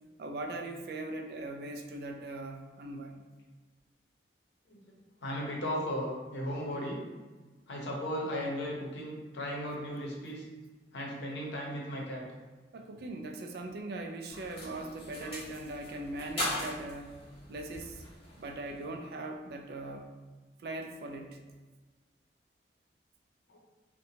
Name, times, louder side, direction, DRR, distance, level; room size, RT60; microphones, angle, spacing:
voice 1, 0.2-3.2 12.7-17.2 17.5-18.0 18.4-20.1 20.6-21.4, right 2 dB, 60° right, 4 dB, 0.3 m, -40 dB
voice 2, 5.2-7.0 7.7-10.4 10.9-12.2 23.5-23.6, equal, 85° left, -3 dB, 0.7 m, -36 dB
sound 1, 14.3-19.0, left 1 dB, 30° left, 0.7 m, -40 dB
2.7 x 2.2 x 2.7 m, 1.3 s
head